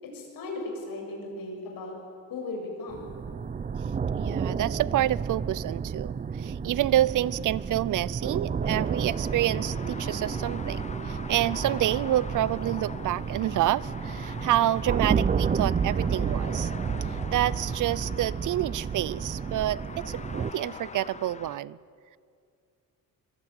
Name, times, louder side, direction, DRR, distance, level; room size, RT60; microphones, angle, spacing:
voice 1, 0.0-1.9 2.3-3.0, left 2 dB, 90° left, 0 dB, 7.7 m, -36 dB
sound 1, 2.9-20.5, right 6 dB, 25° right, 0.5 m, -31 dB
voice 2, 4.2-16.7 17.3-21.8, right 13 dB, 65° right, 21 dB, 0.6 m, -28 dB
sound 2, 8.6-21.6, left 5 dB, 20° left, 0.6 m, -43 dB
25.5 x 20.5 x 9.1 m, 2.3 s
cardioid pair, 165°, 34 cm